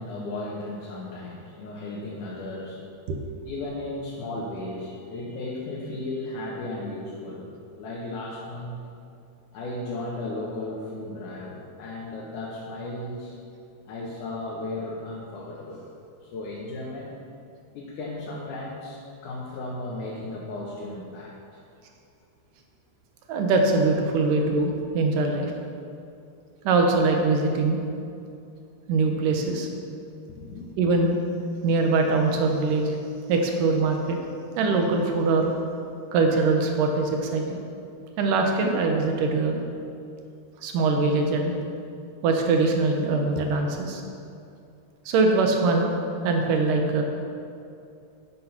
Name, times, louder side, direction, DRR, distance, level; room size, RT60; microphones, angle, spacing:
voice 1, 0.0-2.8 3.4-8.8 9.5-13.4 13.9-15.9 16.2-17.2 17.7-21.6 23.6-23.7 24.1-24.2 30.4-30.7, left 2 dB, 75° left, -4 dB, 2.7 m, -35 dB
voice 2, 23.3-25.5 26.6-27.8 28.9-29.7 30.8-31.2 31.6-33.0 33.3-34.2 34.6-35.5 36.1-37.6 38.2-39.6 40.6-41.5 42.2-44.0 45.1-45.9 46.2-47.0, right 3 dB, 85° right, 2 dB, 2.7 m, -22 dB
10.5 x 8.6 x 5.8 m, 2.5 s
omnidirectional pair, 3.6 m